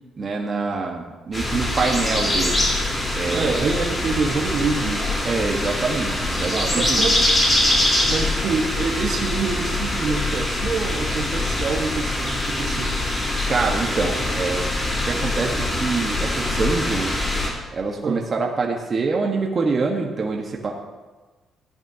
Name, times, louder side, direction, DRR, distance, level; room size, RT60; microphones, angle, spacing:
voice 1, 0.2-2.7 3.1-3.7 5.2-7.1 13.5-14.7 15.0-17.3 17.7-20.7, right 4 dB, 40° right, 0 dB, 1.4 m, -25 dB
sound 1, 1.3-17.5, left 1 dB, 25° left, 3.8 m, -23 dB
voice 2, 3.3-5.2 6.5-7.3 8.1-13.0 18.0-18.2, right 4 dB, 60° right, 2 dB, 1.5 m, -26 dB
15.0 x 10.5 x 2.9 m, 1.2 s
cardioid pair, 90°, 0 cm